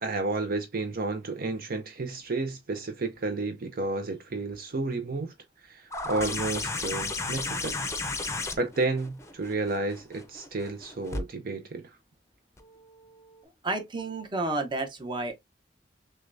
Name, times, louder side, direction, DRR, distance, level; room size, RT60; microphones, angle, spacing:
voice 1, 0.0-5.3 5.6-7.8 8.5-11.8, right 3 dB, 55° right, 0.6 m, -31 dB
sound 1, 5.9-11.2 12.6-12.7, left 3 dB, 15° left, 0.6 m, -33 dB
voice 2, 13.6-15.3, right 2 dB, 25° right, 0.9 m, -31 dB
6.3 x 2.2 x 2.5 m
head